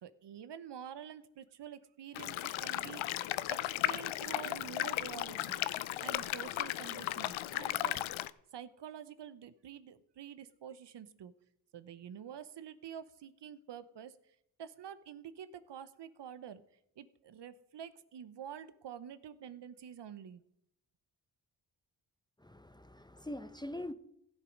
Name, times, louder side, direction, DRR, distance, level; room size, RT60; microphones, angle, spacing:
voice 1, 0.0-3.1 3.5-5.6 6.0-8.1 8.5-11.3 11.7-16.6 17.0-20.4, right 9 dB, 60° right, 0.9 m, -48 dB
sound 1, 2.1-8.3, left 15 dB, 80° left, 0.6 m, -36 dB
voice 2, 22.4-23.9, left 1 dB, 10° left, 0.8 m, -43 dB
16.0 x 7.0 x 5.2 m
supercardioid pair, 55°, 47 cm